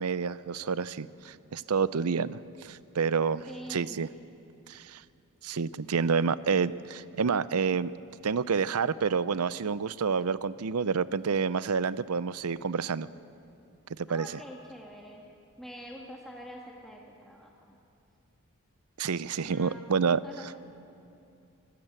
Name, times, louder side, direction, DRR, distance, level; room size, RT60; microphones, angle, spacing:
voice 1, 0.0-4.1 4.7-5.0 5.4-7.9 8.2-13.1 14.0-14.3 19.0-20.2, right 5 dB, 85° right, 17 dB, 0.6 m, -29 dB
voice 2, 3.5-4.0 14.1-15.2 15.6-17.8 19.4-20.0 20.2-20.5, equal, ahead, -2 dB, 1.6 m, -46 dB
25.0 x 15.5 x 8.9 m, 2.7 s
head